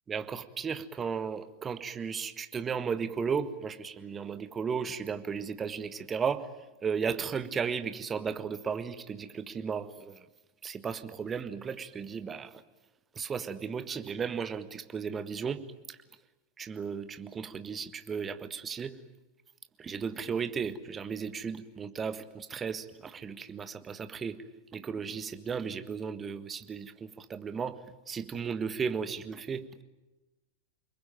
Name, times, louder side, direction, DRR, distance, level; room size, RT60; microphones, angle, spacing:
voice 1, 0.1-6.5 6.8-10.2 10.6-12.6 13.1-15.6 15.9-16.0 16.6-19.0 19.8-24.4 24.7-29.8, right 6 dB, 20° right, 11 dB, 1.6 m, -35 dB
29.0 x 21.0 x 9.2 m, 1.1 s
figure-of-eight pair, 90°, 0 cm